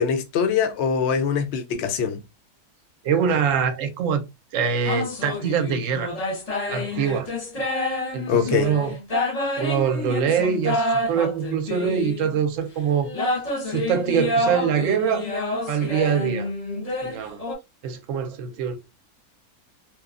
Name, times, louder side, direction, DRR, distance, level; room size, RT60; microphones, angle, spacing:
voice 1, 0.0-2.2 8.3-8.7, left 6 dB, 70° left, 0.6 m, -23 dB
voice 2, 3.0-4.3 4.5-6.1 6.7-7.3 8.1-9.0 9.6-13.1 13.6-15.3 15.7-16.5 17.0-17.4 17.8-18.8, right 7 dB, 65° right, 0.9 m, -24 dB
sound 1, 4.8-12.4 13.0-17.6, left 1 dB, 35° left, 0.7 m, -28 dB
2.9 x 2.2 x 2.4 m
omnidirectional pair, 1.6 m